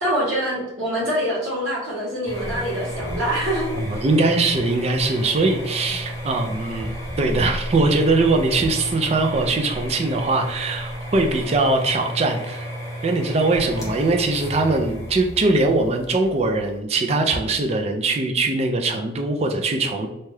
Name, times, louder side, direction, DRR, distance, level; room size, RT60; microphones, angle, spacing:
voice 1, 0.0-4.0, equal, 85° right, -4 dB, 1.2 m, -25 dB
sound 1, 2.2-16.8, equal, 15° left, 0.6 m, -32 dB
voice 2, 3.7-6.9 7.2-12.7 13.0-20.1, right 3 dB, 30° right, 3 dB, 0.3 m, -21 dB
2.7 x 2.2 x 3.2 m, 0.91 s
head